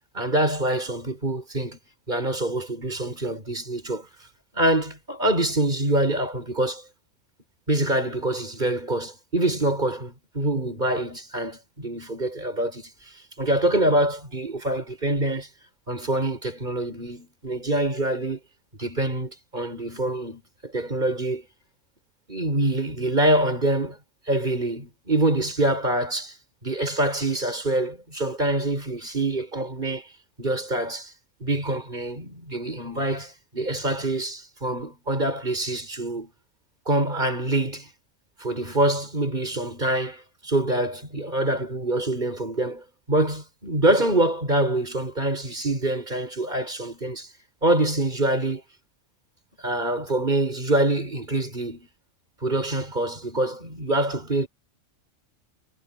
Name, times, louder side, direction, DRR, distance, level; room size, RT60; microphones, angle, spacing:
voice 1, 0.1-1.8 2.1-4.1 4.5-6.8 7.7-15.5 15.9-18.4 18.8-21.5 22.3-24.0 24.3-26.4 26.6-30.1 30.4-31.1 31.4-36.3 36.8-37.9 38.4-47.3 47.6-48.6 49.6-51.9 52.4-54.5, right 1 dB, 40° right, 6.4 m, -25 dB
omnidirectional pair, 1.3 m